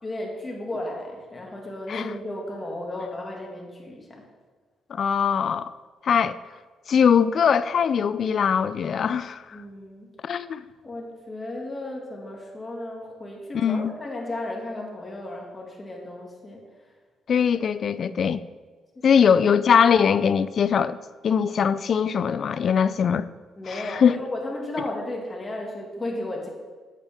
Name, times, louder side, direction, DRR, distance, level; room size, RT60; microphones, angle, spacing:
voice 1, 0.0-4.2 9.5-10.1 10.8-16.7 17.5-17.7 19.0-19.1 23.6-26.5, left 1 dB, 25° left, -1 dB, 2.1 m, -34 dB
voice 2, 4.9-5.7 6.0-6.4 6.9-9.4 10.2-10.6 13.5-13.9 17.3-18.4 19.0-21.0 21.2-23.3 23.7-24.2, left 7 dB, 55° left, 15 dB, 0.3 m, -21 dB
8.2 x 8.1 x 3.6 m, 1.4 s
cardioid pair, 90°, 0 cm